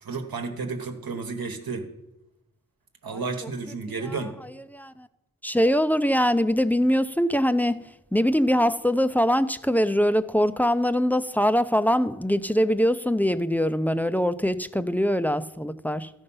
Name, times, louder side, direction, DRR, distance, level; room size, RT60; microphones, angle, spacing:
voice 1, 0.0-1.9 3.0-4.4, right 4 dB, 80° right, 5 dB, 1.2 m, -32 dB
voice 2, 3.1-3.5 4.0-5.1 5.4-7.8 8.1-16.1, equal, 5° left, 12 dB, 0.3 m, -23 dB
13.5 x 5.3 x 5.5 m, 0.88 s
wide cardioid pair, 90°, 35 cm